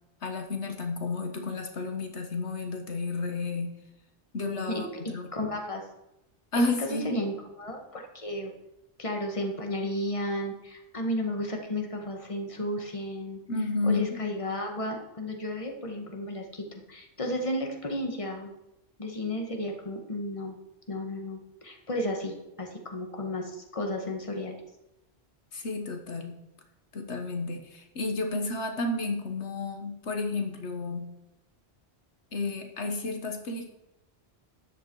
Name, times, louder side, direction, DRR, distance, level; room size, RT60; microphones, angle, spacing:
voice 1, 0.2-3.7 4.3-5.3 6.5-7.2 13.5-14.2 25.5-26.4 26.9-31.1 32.3-33.7, left 3 dB, 80° left, 4 dB, 1.7 m, -31 dB
voice 2, 5.3-5.9 6.6-8.5 9.0-13.4 13.9-18.5 19.0-20.6 20.9-24.6, left 1 dB, 30° left, 2 dB, 1.8 m, -33 dB
13.0 x 10.0 x 4.8 m, 0.93 s
omnidirectional pair, 1.2 m